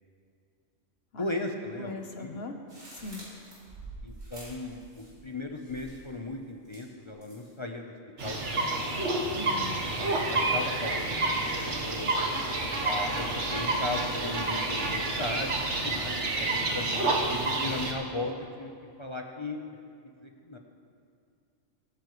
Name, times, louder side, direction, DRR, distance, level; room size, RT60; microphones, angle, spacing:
voice 1, 1.2-2.3 4.0-7.8 8.2-9.4 10.3-12.2 12.8-15.5 15.8-18.7 19.0-19.6 20.2-20.6, left 2 dB, 30° left, 2 dB, 0.6 m, -37 dB
voice 2, 1.8-2.5 2.9-3.2 9.3-9.8, left 3 dB, 50° left, 5 dB, 1.1 m, -40 dB
sound 1, 2.7-5.3 5.6-6.2 6.7-7.5, right 2 dB, 75° right, 4.4 m, -47 dB
sound 2, 8.2-17.9, right 2 dB, 60° right, 1.5 m, -29 dB
22.0 x 9.7 x 3.1 m, 2.4 s
omnidirectional pair, 1.4 m